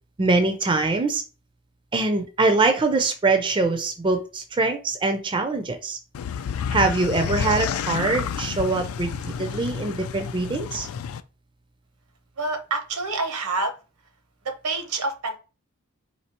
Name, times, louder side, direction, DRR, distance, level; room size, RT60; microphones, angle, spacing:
voice 1, 0.2-1.2 1.9-6.0 6.7-9.1 9.4-10.9, right 3 dB, 20° right, 0.4 m, -23 dB
sound 1, 6.1-11.2, left 7 dB, 70° left, 0.3 m, -29 dB
voice 2, 12.4-13.7 14.4-15.4, right 3 dB, 85° right, 0.9 m, -27 dB
4.3 x 2.7 x 2.8 m
head